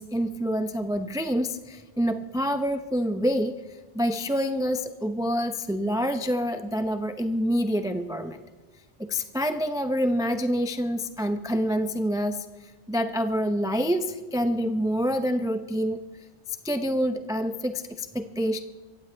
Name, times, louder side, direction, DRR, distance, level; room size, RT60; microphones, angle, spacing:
voice 1, 0.0-3.5 3.9-8.4 9.0-16.0 16.6-18.6, equal, 5° right, 7 dB, 0.4 m, -27 dB
26.0 x 15.5 x 3.3 m, 1.3 s
omnidirectional pair, 1.2 m